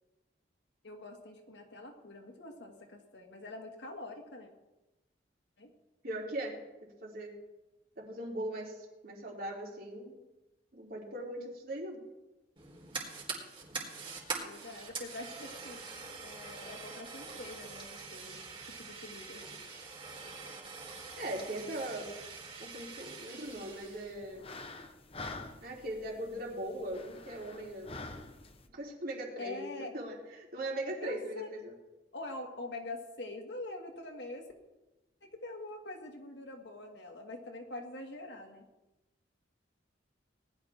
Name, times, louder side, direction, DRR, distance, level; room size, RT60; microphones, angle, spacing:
voice 1, 0.8-4.5 5.6-5.7 14.4-15.8 16.2-19.5 29.4-29.9 31.0-31.5 32.1-34.5 35.2-38.7, left 2 dB, 65° left, 3 dB, 2.1 m, -44 dB
voice 2, 6.0-6.6 7.0-7.3 8.0-8.8 9.0-10.2 10.7-12.0 21.2-22.2 22.6-24.5 25.6-28.0 28.7-31.7, right 1 dB, 55° right, -2 dB, 3.5 m, -39 dB
Fire, 12.6-24.1, right 4 dB, 30° right, 3.7 m, -44 dB
sound 1, 23.5-28.7, left 3 dB, 30° left, 1.0 m, -47 dB
19.5 x 12.0 x 3.6 m, 1.0 s
head